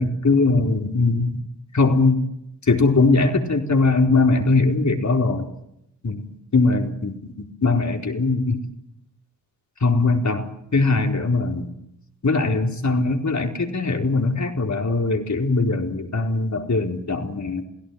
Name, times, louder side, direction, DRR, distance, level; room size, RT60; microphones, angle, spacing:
voice 1, 0.0-1.4 1.7-2.2 2.7-5.5 6.0-6.2 6.5-8.6 9.8-10.5 10.7-11.7 12.2-17.6, left 3 dB, 40° left, 4 dB, 4.4 m, -20 dB
28.0 x 17.0 x 9.5 m, 0.81 s
hypercardioid pair, 40°, 45 cm